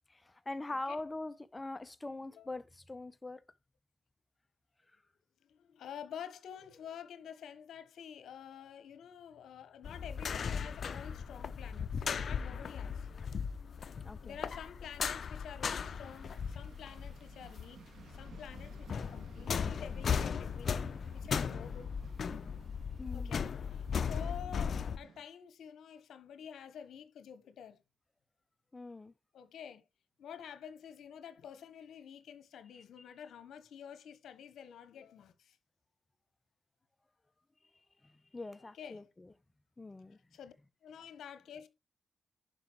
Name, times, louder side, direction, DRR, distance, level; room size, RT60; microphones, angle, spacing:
voice 1, 0.1-3.4 14.0-14.4 23.0-23.3 28.7-29.1 38.0-39.3 39.8-40.2, left 2 dB, 25° left, 0.8 m, -43 dB
voice 2, 5.5-13.1 14.2-17.8 18.1-22.0 23.1-27.8 29.3-29.8 30.2-35.6 38.6-39.1 40.3-40.5 40.8-41.7, left 8 dB, 80° left, 1.2 m, -49 dB
sound 1, 9.8-17.7 18.0-25.0, left 6 dB, 60° left, 0.7 m, -37 dB
sound 2, 15.8-25.2, right 5 dB, 75° right, 1.9 m, -58 dB
11.0 x 5.1 x 4.6 m
cardioid pair, 75°, 0 cm